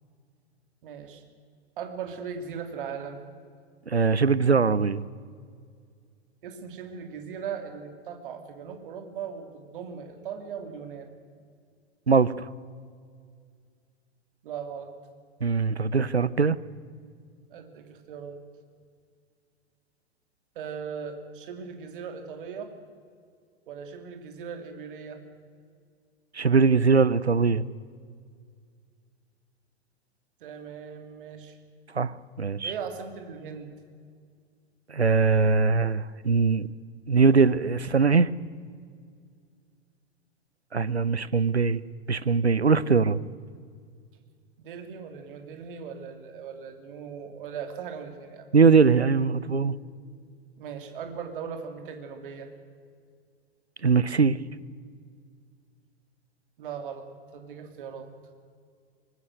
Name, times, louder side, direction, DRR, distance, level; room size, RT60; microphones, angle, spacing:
voice 1, 0.8-1.2 1.8-3.2 6.4-11.1 14.4-14.9 17.5-18.4 20.5-22.7 23.7-25.2 30.4-31.6 32.6-33.7 44.6-48.5 50.6-52.5 56.6-57.1 57.3-58.1, right 6 dB, 55° right, 7 dB, 3.0 m, -38 dB
voice 2, 3.9-5.0 12.1-12.5 15.4-16.6 26.3-27.6 31.9-32.7 34.9-36.7 37.1-38.3 40.7-41.8 42.1-43.2 48.5-49.8 53.8-54.4, right 5 dB, 90° right, 19 dB, 0.8 m, -21 dB
24.0 x 21.0 x 6.5 m, 2.1 s
figure-of-eight pair, 100°, 32 cm